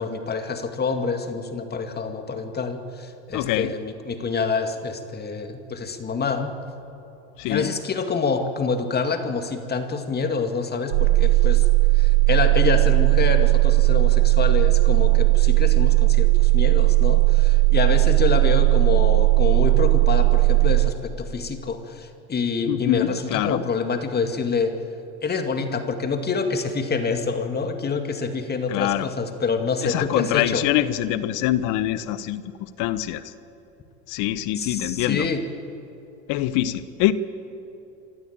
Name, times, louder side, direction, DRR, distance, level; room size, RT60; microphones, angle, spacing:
voice 1, 0.0-6.5 7.5-11.7 11.9-24.8 25.2-30.7 34.6-35.4, left 4 dB, 30° left, 7 dB, 2.3 m, -27 dB
voice 2, 3.3-3.7 7.4-7.7 22.7-23.6 28.7-29.1 29.8-32.4 32.8-33.3 34.1-35.3 36.3-37.1, left 14 dB, 60° left, 15 dB, 1.1 m, -24 dB
sound 1, 10.9-20.9, right 25 dB, 80° right, 1.0 m, -17 dB
26.5 x 13.0 x 9.0 m, 2.8 s
hypercardioid pair, 85°, 34 cm